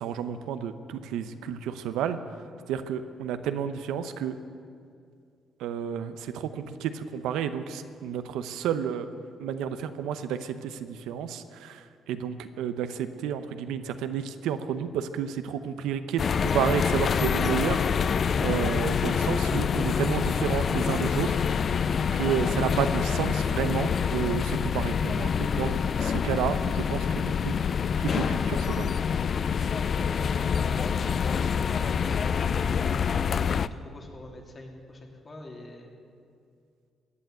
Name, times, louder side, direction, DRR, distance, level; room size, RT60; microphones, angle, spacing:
voice 1, 0.0-2.2 2.7-4.3 5.6-9.1 9.4-16.2 16.5-17.9 18.4-21.4 22.1-27.5 28.0-28.9, right 8 dB, 90° right, 10 dB, 0.8 m, -31 dB
sound 1, 16.2-33.7, left 7 dB, 50° left, 0.4 m, -26 dB
voice 2, 30.0-36.0, left 1 dB, 35° left, 1 dB, 2.8 m, -44 dB
15.5 x 9.3 x 7.8 m, 2.3 s
cardioid pair, 75°, 0 cm